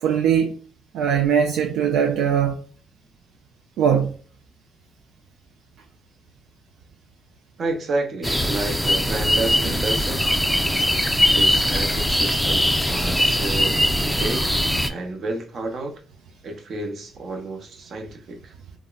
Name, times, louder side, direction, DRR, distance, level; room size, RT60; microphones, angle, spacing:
voice 1, 0.0-0.5 0.9-2.6 3.8-4.2, right 8 dB, 85° right, 0.4 m, -20 dB
voice 2, 7.6-10.3 11.2-14.5 14.9-16.0 16.4-18.5, right 2 dB, 55° right, 0.8 m, -30 dB
sound 1, 8.2-14.9, equal, ahead, 0.4 m, -21 dB
3.5 x 2.0 x 2.2 m
cardioid pair, 90°, 0 cm